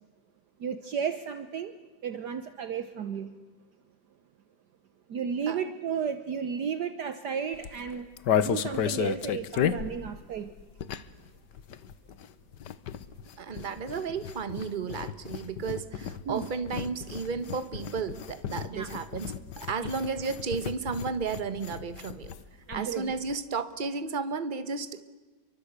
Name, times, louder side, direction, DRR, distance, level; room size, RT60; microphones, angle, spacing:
voice 1, 0.6-1.7 2.0-3.3 5.1-8.1 8.4-10.5 16.3-16.5 18.7-18.9 22.7-23.2, right 7 dB, 60° right, 11 dB, 1.5 m, -33 dB
sound 1, 7.5-11.3 11.5-22.4 22.7-22.8 23.0-23.3, left 9 dB, 65° left, 1.6 m, -33 dB
voice 2, 13.4-22.3 22.7-25.0, right 5 dB, 30° right, 11 dB, 1.3 m, -33 dB
29.0 x 23.5 x 8.2 m, 1.4 s
omnidirectional pair, 2.1 m